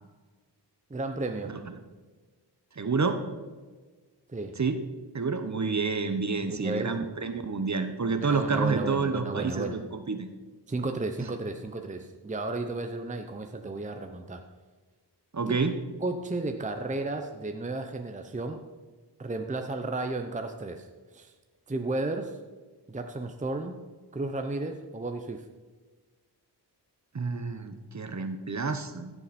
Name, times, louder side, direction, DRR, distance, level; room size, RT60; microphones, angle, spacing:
voice 1, 0.9-1.6 4.3-4.6 6.4-7.0 8.2-9.8 10.7-14.4 15.5-15.6 16.0-18.6 19.2-20.9 21.1-21.3 21.7-22.4 22.9-23.8 24.1-25.4, right 2 dB, 20° right, 6 dB, 0.7 m, -33 dB
voice 2, 2.8-3.2 4.6-4.8 5.1-10.3 15.3-15.7 27.1-29.1, right 4 dB, 40° right, 8 dB, 1.0 m, -29 dB
15.5 x 7.1 x 4.3 m, 1.4 s
wide cardioid pair, 85°, 42 cm